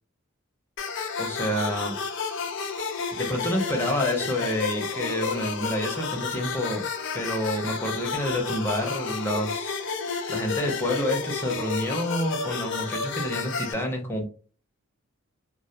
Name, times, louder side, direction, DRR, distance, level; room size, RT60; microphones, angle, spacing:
sound 1, 0.8-13.7, left 5 dB, 60° left, 0.5 m, -31 dB
voice 1, 1.2-2.0 3.1-6.9 7.1-9.8 10.3-14.3, equal, 10° left, 1 dB, 0.5 m, -28 dB
2.2 x 2.1 x 2.7 m, 0.39 s
head